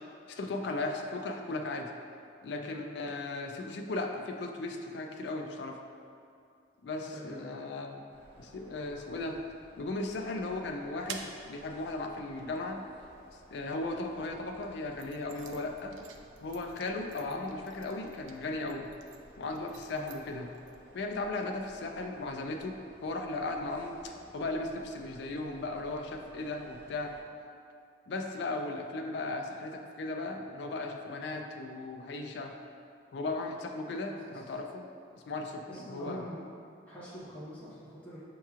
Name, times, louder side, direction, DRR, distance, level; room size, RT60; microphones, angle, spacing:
voice 1, 0.3-1.9 2.4-5.8 6.8-8.0 8.4-9.4 9.8-12.8 13.5-16.0 16.4-18.9 19.4-20.5 20.9-22.7 23.0-27.1 28.1-32.5 33.1-34.9 35.3-36.2, left 2 dB, 65° left, 4 dB, 0.3 m, -36 dB
voice 2, 2.6-3.0 7.1-7.4 17.2-17.5 19.9-20.1 34.1-34.4 35.7-36.4 36.8-38.2, equal, 10° left, -11 dB, 0.9 m, -45 dB
sound 1, 8.1-27.2, equal, 45° right, 0.8 m, -56 dB
sound 2, 10.3-13.9 14.5-20.8, right 6 dB, 85° right, 0.3 m, -51 dB
5.5 x 2.9 x 2.4 m, 2.4 s
head